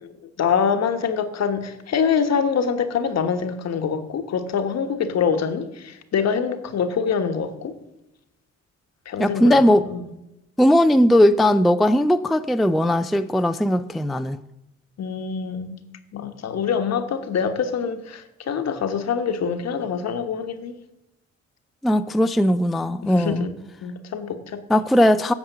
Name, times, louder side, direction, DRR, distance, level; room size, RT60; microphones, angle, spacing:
voice 1, 0.0-7.8 9.0-10.1 15.0-15.7 16.1-20.8 23.1-23.5 23.8-24.6, left 6 dB, 60° left, 1.3 m, -25 dB
voice 2, 9.2-9.8 10.6-14.4 21.8-23.5 24.7-25.3, equal, ahead, 0.4 m, -18 dB
11.0 x 7.1 x 6.7 m
cardioid pair, 90°, 30 cm